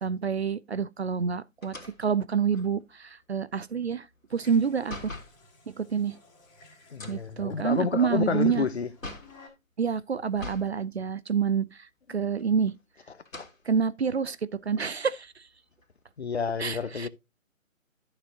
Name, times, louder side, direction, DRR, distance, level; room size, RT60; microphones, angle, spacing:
voice 1, 0.0-4.1 4.3-5.1 5.8-6.1 7.1-8.7 9.8-11.7 12.1-12.7 13.7-14.4 14.7-15.3 16.6-17.1, right 6 dB, 55° right, 0.5 m, -27 dB
sound 1, 1.6-5.4 6.9-9.4 10.3-10.8 11.1-11.2 12.3-12.8 13.2-13.6 14.2-14.3 14.7-16.1, left 2 dB, 75° left, 2.6 m, -44 dB
sound 2, 4.3-9.5, equal, 15° left, 2.2 m, -52 dB
voice 2, 6.9-8.9 13.1-13.5 16.2-17.1, left 5 dB, 50° left, 0.9 m, -30 dB
11.5 x 6.8 x 2.8 m
figure-of-eight pair, 150°, 40 cm